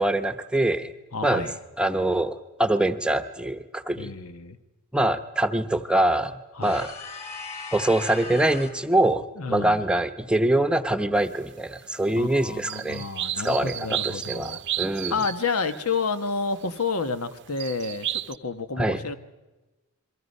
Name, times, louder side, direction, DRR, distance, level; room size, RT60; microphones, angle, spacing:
voice 1, 0.0-0.9 1.2-1.5 1.8-4.1 4.9-6.9 7.7-13.0 13.4-15.1 18.8-19.1, right 1 dB, 5° right, 9 dB, 0.8 m, -24 dB
voice 2, 1.1-1.6 4.0-4.6 6.5-6.8 9.4-9.8 12.1-14.6 15.1-19.2, left 4 dB, 90° left, 11 dB, 1.3 m, -30 dB
sound 1, 6.6-8.9, left 4 dB, 30° left, 3.3 m, -38 dB
sound 2, 12.7-16.9 17.6-18.4, right 12 dB, 55° right, 0.7 m, -33 dB
28.5 x 23.0 x 5.5 m, 1.1 s
head